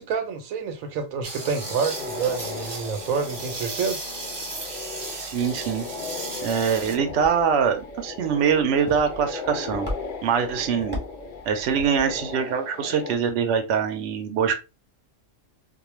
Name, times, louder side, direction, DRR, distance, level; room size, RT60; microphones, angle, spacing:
voice 1, 0.0-4.0, right 5 dB, 90° right, 1.1 m, -28 dB
sound 1, 1.2-7.0, right 2 dB, 40° right, 0.4 m, -35 dB
sound 2, 1.4-13.2, left 4 dB, 65° left, 0.5 m, -37 dB
voice 2, 5.2-5.9 6.4-9.9 10.2-11.0 11.5-14.5, right 7 dB, 65° right, 0.8 m, -23 dB
sound 3, 6.8-12.4, left 1 dB, 10° right, 0.7 m, -39 dB
2.4 x 2.1 x 3.0 m
omnidirectional pair, 1.4 m